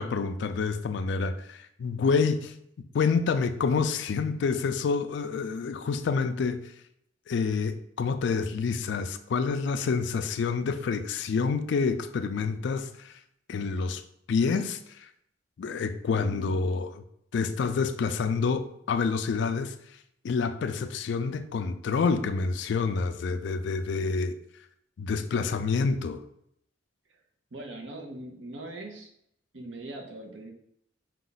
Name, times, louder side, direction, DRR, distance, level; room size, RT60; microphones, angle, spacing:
voice 1, 0.0-2.5 2.9-6.6 7.3-13.1 13.5-14.0 14.3-15.1 15.6-16.9 17.3-19.7 20.2-24.3 25.0-26.2, left 5 dB, 65° left, 10 dB, 0.3 m, -28 dB
voice 2, 16.0-16.5 27.5-29.1 29.5-30.5, right 1 dB, 70° right, 3 dB, 0.8 m, -41 dB
4.9 x 2.3 x 3.9 m, 0.73 s
head